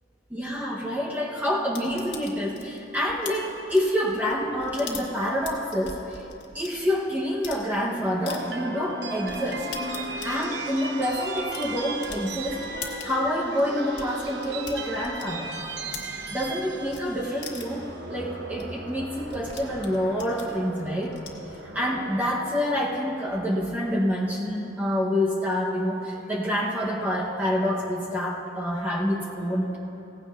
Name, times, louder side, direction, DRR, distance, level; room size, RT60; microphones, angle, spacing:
voice 1, 0.3-6.2 6.5-9.7 10.2-12.6 13.0-15.5 16.3-21.2 21.5-29.8, equal, 10° right, -4 dB, 0.9 m, -27 dB
sound 1, 1.7-6.7 7.2-7.6 8.3-8.4 8.8-8.9 9.3-16.6 16.9-17.0 17.4-17.9 18.3-18.4 18.6-18.7 18.9-21.6, left 6 dB, 85° left, 1.6 m, -42 dB
sound 2, 8.2-24.4, right 2 dB, 90° right, 1.0 m, -37 dB
17.0 x 15.5 x 2.5 m, 2.9 s
head